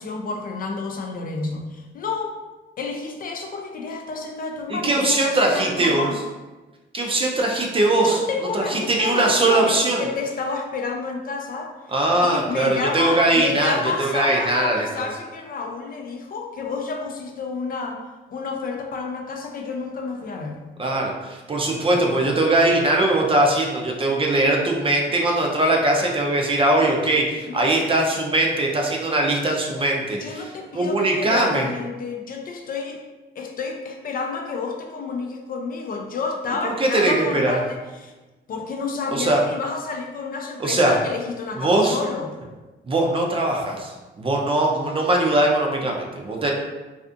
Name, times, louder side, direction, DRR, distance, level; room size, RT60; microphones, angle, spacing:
voice 1, 0.0-2.3 2.8-6.2 8.0-11.7 12.2-18.0 18.3-20.6 27.5-28.0 30.1-33.0 33.4-38.1 38.5-42.3, left 4 dB, 45° left, 2 dB, 0.4 m, -30 dB
voice 2, 4.7-6.1 6.9-8.2 8.5-10.0 11.9-15.1 20.8-30.4 30.7-31.6 36.8-37.6 39.1-39.4 40.6-40.9 41.6-42.0 42.9-46.5, right 2 dB, 25° right, 0 dB, 0.4 m, -21 dB
2.4 x 2.4 x 2.5 m, 1.2 s
cardioid pair, 90°, 20 cm